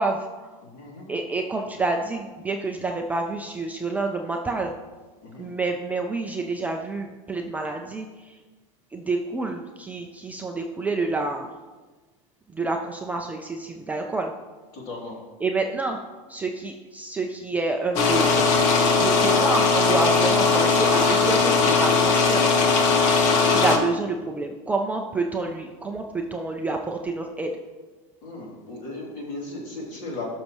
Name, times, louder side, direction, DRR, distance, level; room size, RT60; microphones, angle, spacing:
voice 1, 0.0-0.5 1.1-4.7 5.4-8.3 8.9-11.5 12.5-14.3 15.4-16.0 16.3-18.5 18.9-22.4 23.5-27.5, right 3 dB, 10° right, 2 dB, 0.4 m, -28 dB
voice 2, 0.6-1.1 5.2-5.5 14.7-15.2 28.2-30.2, left 2 dB, 50° left, -2 dB, 3.0 m, -36 dB
sound 1, 18.0-23.8, left 4 dB, 65° left, 1.3 m, -19 dB
16.0 x 6.5 x 3.0 m, 1.3 s
supercardioid pair, 155°, 17 cm